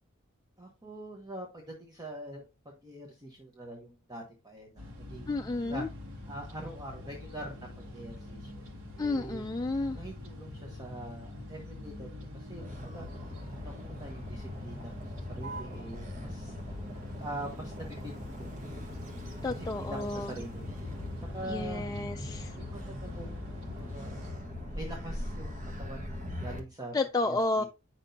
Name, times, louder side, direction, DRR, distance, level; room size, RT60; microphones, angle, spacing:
voice 1, 0.6-2.4 2.8-5.8 6.3-8.6 9.0-9.4 9.9-12.1 12.3-13.1 13.5-16.5 17.2-18.5 19.4-20.6 21.2-21.9 22.6-26.9 27.2-27.6, right 1 dB, 20° right, 1.1 m, -44 dB
sound 1, 4.8-24.3, left 2 dB, 75° right, 2.0 m, -44 dB
voice 2, 5.3-5.9 9.0-10.0 19.4-20.3 21.5-22.6 26.9-27.6, left 2 dB, 15° left, 0.3 m, -31 dB
Motor vehicle (road), 12.6-26.6, equal, 35° right, 1.5 m, -41 dB
8.9 x 6.0 x 2.7 m
head